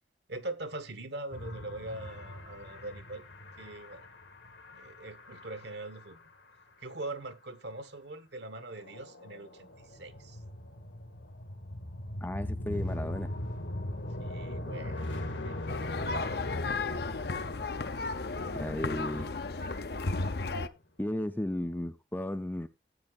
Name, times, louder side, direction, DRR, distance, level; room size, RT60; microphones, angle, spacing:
voice 1, 0.3-3.2 3.6-4.1 4.7-6.2 6.8-10.4 14.2-15.6 19.2-19.3, right 2 dB, 65° right, 1.3 m, -42 dB
sound 1, 1.3-6.2 8.8-20.3, left 1 dB, 85° left, 2.4 m, -40 dB
voice 2, 12.2-13.3 18.6-19.3 21.0-22.7, left 1 dB, 10° left, 0.5 m, -34 dB
sound 2, 15.7-20.7, left 3 dB, 55° left, 0.7 m, -34 dB
15.0 x 8.8 x 2.4 m
head